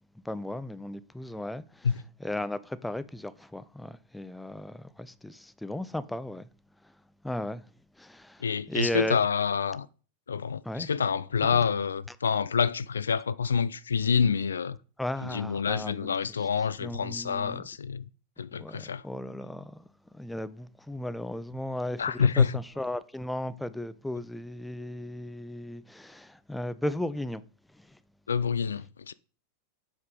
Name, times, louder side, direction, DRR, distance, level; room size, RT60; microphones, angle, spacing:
voice 1, 0.2-1.9 2.2-6.5 7.2-7.6 8.0-9.2 10.7-10.9 11.4-11.5 15.0-16.1 16.8-17.6 18.5-19.8 20.1-27.4 27.8-27.9, left 1 dB, 5° left, 0.4 m, -35 dB
voice 2, 8.4-9.9 10.3-14.8 15.2-18.1 18.4-19.0 22.0-22.6 28.3-29.1, left 6 dB, 70° left, 0.3 m, -27 dB
7.7 x 5.4 x 3.9 m
figure-of-eight pair, 90°, 0 cm